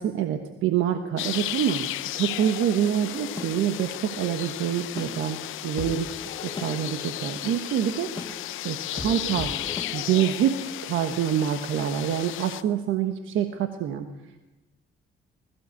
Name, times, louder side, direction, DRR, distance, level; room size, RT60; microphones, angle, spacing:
voice 1, 0.0-1.9 2.2-8.1 8.6-9.5 9.9-14.1, right 9 dB, 85° right, 7 dB, 1.3 m, -26 dB
sound 1, 1.2-12.6, left 15 dB, 85° left, 0.8 m, -34 dB
sound 2, 3.0-10.2, left 3 dB, 20° left, 2.2 m, -40 dB
20.5 x 15.5 x 8.4 m, 1.0 s
cardioid pair, 90°, 20 cm